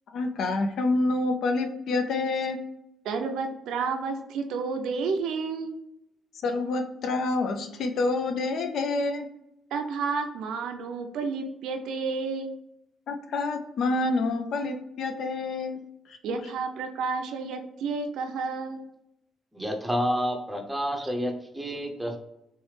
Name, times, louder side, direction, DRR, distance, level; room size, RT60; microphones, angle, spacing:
voice 1, 0.1-2.6 6.4-9.3 13.1-16.2, left 3 dB, 70° left, 5 dB, 0.4 m, -27 dB
voice 2, 3.0-5.8 9.7-12.5 16.2-18.9, right 4 dB, 85° right, 5 dB, 0.5 m, -31 dB
voice 3, 19.5-22.2, equal, 10° right, 4 dB, 0.6 m, -29 dB
3.1 x 3.1 x 3.2 m, 0.84 s
cardioid pair, 90°, 0 cm